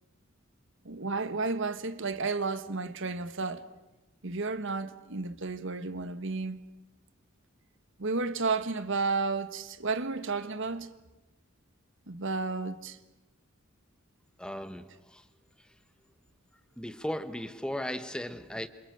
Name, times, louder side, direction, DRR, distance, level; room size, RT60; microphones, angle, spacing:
voice 1, 0.8-3.6 4.2-6.6 8.0-10.9 12.1-13.0, right 4 dB, 65° right, 1.5 m, -32 dB
voice 2, 14.4-15.2 15.6-15.7 16.8-18.7, left 1 dB, 5° left, 1.2 m, -36 dB
28.0 x 28.0 x 6.7 m
head